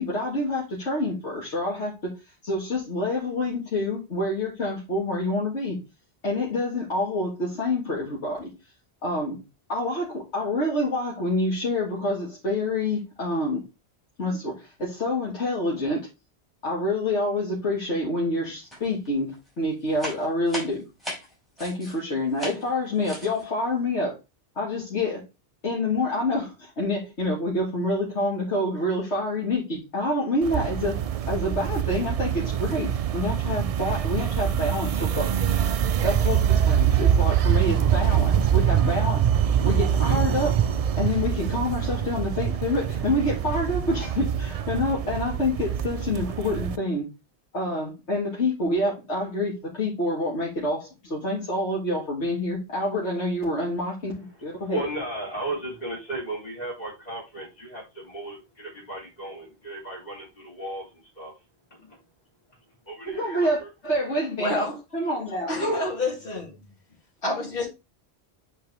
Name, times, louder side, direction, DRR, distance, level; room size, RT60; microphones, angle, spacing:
voice 1, 0.0-2.1 2.4-5.8 6.2-8.5 9.0-9.4 9.7-13.6 14.2-16.0 16.6-20.8 21.6-24.1 24.6-25.2 25.6-31.0 31.3-35.3 36.0-39.3 39.6-40.6 41.0-47.1 47.5-54.8 63.1-64.7 64.9-65.5, left 1 dB, 90° left, 2.4 m, -27 dB
sound 1, 18.7-19.1 19.3-22.0 22.3-22.7 23.0-23.4, equal, ahead, 4.6 m, -37 dB
sound 2, 30.4-46.8, right 9 dB, 65° right, 0.3 m, -24 dB
voice 2, 54.4-61.3 61.7-62.0 62.9-63.7, right 2 dB, 35° left, 3.6 m, -35 dB
voice 3, 64.4-64.8 65.5-66.7 67.2-67.7, left 1 dB, 55° left, 2.7 m, -28 dB
8.5 x 4.6 x 3.4 m
omnidirectional pair, 1.1 m